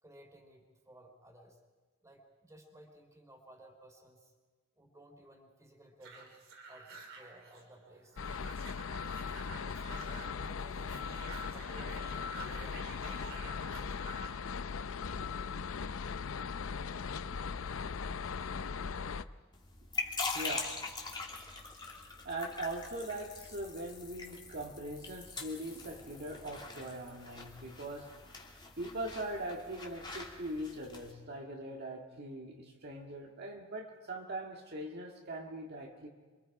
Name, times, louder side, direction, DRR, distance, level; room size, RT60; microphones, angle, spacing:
voice 1, 0.0-1.6 2.0-4.3 4.8-6.3 6.7-8.2 9.6-14.1, right 1 dB, 15° right, 3 dB, 3.4 m, -57 dB
sound 1, 6.0-14.4, right 3 dB, 70° right, 3.8 m, -50 dB
sound 2, 8.2-19.2, left 5 dB, 75° left, 0.6 m, -39 dB
sound 3, 19.5-31.1, left 3 dB, 20° left, 2.7 m, -43 dB
voice 2, 20.3-20.8 22.2-28.2 28.8-36.1, right 1 dB, 50° right, 0 dB, 2.0 m, -41 dB
28.0 x 24.5 x 4.9 m, 1.4 s
head